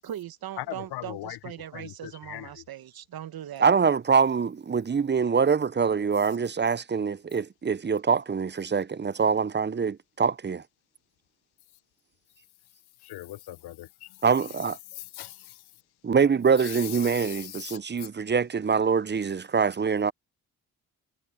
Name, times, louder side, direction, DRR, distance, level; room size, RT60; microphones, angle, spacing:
voice 1, 0.0-3.7, right 11 dB, 65° right, 1.2 m, -39 dB
voice 2, 0.6-1.4 1.7-2.5 13.0-14.1 14.9-15.6 16.6-17.8, left 15 dB, 75° left, 1.0 m, -39 dB
voice 3, 3.6-10.6 14.2-14.8 16.0-20.1, right 6 dB, 25° right, 0.7 m, -24 dB
hypercardioid pair, 40°, 39 cm